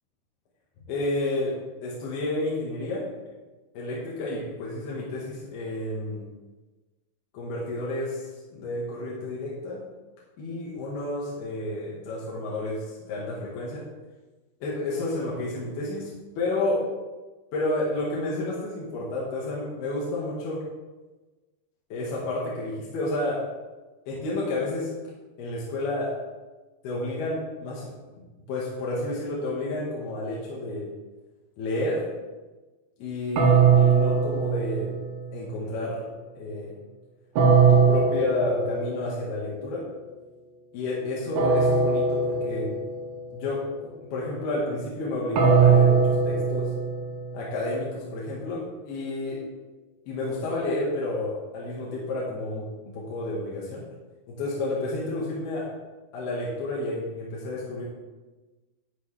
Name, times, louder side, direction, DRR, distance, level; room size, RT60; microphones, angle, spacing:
voice 1, 0.9-3.1 3.7-6.2 7.3-9.8 10.4-13.9 14.6-16.1 16.4-16.9 17.5-20.6 21.9-23.5 24.1-24.9 25.4-26.2 26.8-30.9 31.6-32.1 33.0-34.9 35.3-36.1 36.4-36.7 37.7-39.9 40.7-42.8 43.3-46.7 47.3-49.4 50.1-53.9 54.3-55.8 56.1-57.9, left 2 dB, 70° left, -5 dB, 3.5 m, -30 dB
Clock Chime tubebells handbells vibes, 33.4-35.4 37.4-39.2 41.4-43.2 45.4-47.6, right 5 dB, 75° right, 3.2 m, -21 dB
11.5 x 10.5 x 3.4 m, 1.2 s
omnidirectional pair, 5.0 m